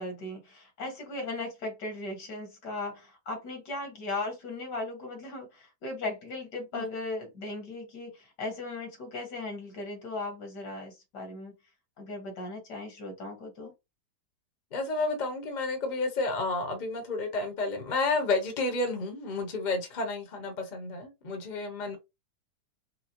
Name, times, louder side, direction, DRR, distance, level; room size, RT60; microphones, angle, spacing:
voice 1, 0.0-11.5 12.0-13.7, left 2 dB, 70° left, 2.1 m, -37 dB
voice 2, 14.7-22.0, left 3 dB, 35° left, 0.9 m, -31 dB
5.6 x 2.0 x 2.9 m
omnidirectional pair, 1.9 m